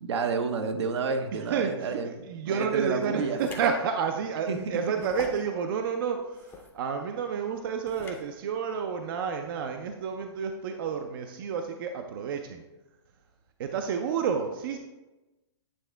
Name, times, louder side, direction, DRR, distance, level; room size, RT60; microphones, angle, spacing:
voice 1, 0.0-2.1 2.4-3.4 4.5-4.6, right 5 dB, 75° right, 6 dB, 0.8 m, -29 dB
voice 2, 1.4-12.6 13.6-14.8, right 6 dB, 50° right, 5 dB, 0.5 m, -30 dB
sound 1, 3.3-3.7 4.2-4.3 5.0-5.5 6.3-6.7 7.9-8.3, left 5 dB, 15° left, 0.6 m, -43 dB
8.7 x 3.6 x 3.4 m, 1.1 s
hypercardioid pair, 150°, 14 cm